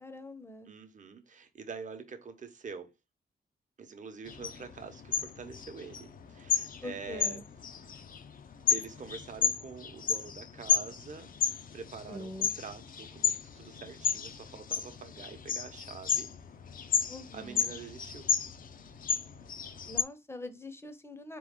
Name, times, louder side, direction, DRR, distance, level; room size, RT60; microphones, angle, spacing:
voice 1, 0.0-0.7 6.8-7.4 12.1-12.5 17.1-17.7 19.9-21.4, left 1 dB, 15° left, 0.6 m, -43 dB
voice 2, 0.7-2.9 3.8-7.4 7.7-7.9 8.7-16.3 17.3-18.3, right 5 dB, 45° right, 0.8 m, -46 dB
sound 1, 4.3-20.0, left 6 dB, 55° left, 0.5 m, -33 dB
4.1 x 3.0 x 3.6 m
wide cardioid pair, 115°, 17 cm